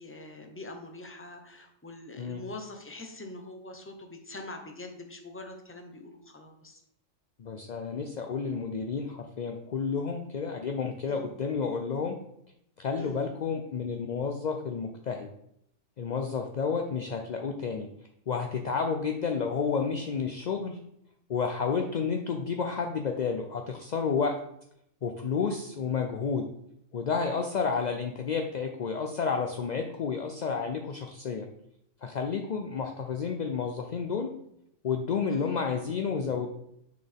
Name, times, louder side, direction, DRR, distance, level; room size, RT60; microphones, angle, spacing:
voice 1, 0.0-6.8 11.1-11.3 13.0-13.2 35.3-35.5, left 2 dB, 10° left, 3 dB, 0.8 m, -43 dB
voice 2, 7.4-12.2 12.8-15.3 16.0-17.9 18.3-20.8 21.3-24.3 25.0-26.5 26.9-31.5 32.0-34.3 34.8-36.5, left 5 dB, 60° left, 4 dB, 0.4 m, -31 dB
9.2 x 4.4 x 3.5 m, 0.75 s
omnidirectional pair, 1.4 m